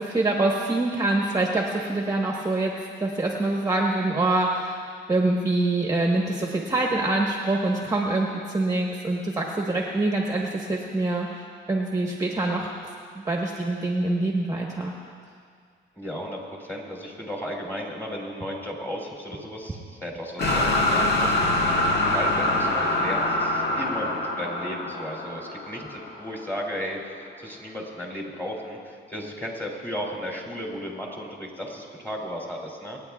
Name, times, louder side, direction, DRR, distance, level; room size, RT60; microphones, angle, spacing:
voice 1, 0.0-2.7 3.0-4.8 5.1-11.3 11.7-12.7 13.2-14.9, right 2 dB, 15° right, -1 dB, 1.3 m, -25 dB
voice 2, 16.0-33.0, equal, 10° left, -2 dB, 2.9 m, -35 dB
sound 1, 20.4-26.4, left 1 dB, 55° left, 1.6 m, -24 dB
27.5 x 9.4 x 2.4 m, 2.1 s
cardioid pair, 90°, 20 cm